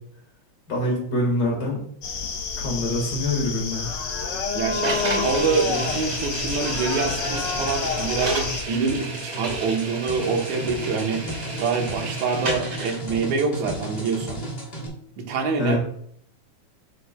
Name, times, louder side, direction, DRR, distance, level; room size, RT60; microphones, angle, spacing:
voice 1, 0.7-1.8 2.6-3.9 15.6-15.8, left 1 dB, 40° left, -1 dB, 2.1 m, -25 dB
sound 1, 2.0-8.6, left 4 dB, 90° left, 0.9 m, -28 dB
voice 2, 4.6-14.4 15.2-15.8, right 5 dB, 80° right, 2 dB, 2.4 m, -26 dB
sound 2, 4.8-13.0, right 2 dB, 30° right, 2.2 m, -32 dB
sound 3, 5.3-14.9, right 1 dB, 65° left, 0.5 m, -35 dB
8.2 x 7.0 x 2.2 m, 0.65 s
omnidirectional pair, 3.3 m